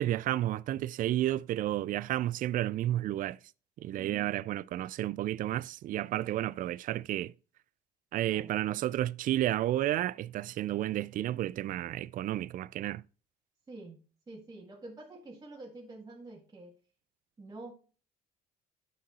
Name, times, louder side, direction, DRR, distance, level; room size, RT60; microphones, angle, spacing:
voice 1, 0.0-3.4 3.8-7.3 8.1-13.0, right 13 dB, 55° right, 0.4 m, -31 dB
voice 2, 4.0-4.3 8.3-8.5 13.7-16.8 17.4-17.7, right 2 dB, 20° right, 1.8 m, -47 dB
9.8 x 6.2 x 4.1 m
cardioid pair, 110°, 17 cm